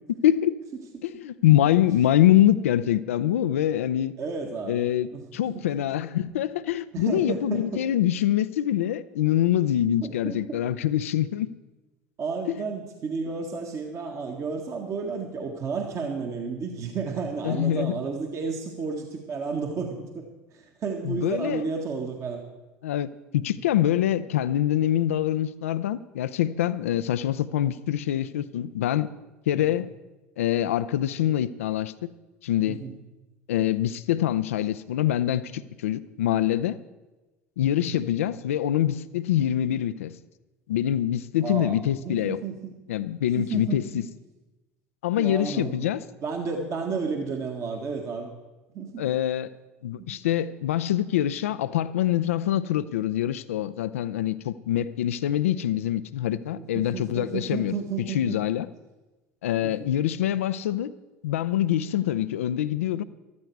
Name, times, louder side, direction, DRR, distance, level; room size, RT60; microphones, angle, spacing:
voice 1, 0.2-0.5 1.0-4.1 4.7-11.5 12.5-12.6 17.4-18.0 21.0-21.7 22.8-29.1 29.5-29.9 30.4-31.9 32.4-32.8 33.5-36.8 37.6-40.2 40.7-42.4 42.9-44.0 45.0-46.0 49.0-49.5 49.8-58.7 59.4-60.9 61.2-63.0, left 12 dB, 80° left, 16 dB, 0.5 m, -25 dB
voice 2, 4.2-5.2 6.9-7.8 10.0-10.6 12.2-20.2 20.5-22.4 32.7-32.9 37.8-38.0 41.4-42.7 43.4-44.0 45.2-45.9 46.2-48.3 48.7-49.1 50.0-50.2 56.6-58.4 59.6-59.9, right 5 dB, 45° right, 2 dB, 1.7 m, -32 dB
14.0 x 12.5 x 4.6 m, 1.1 s
hypercardioid pair, 75°, 7 cm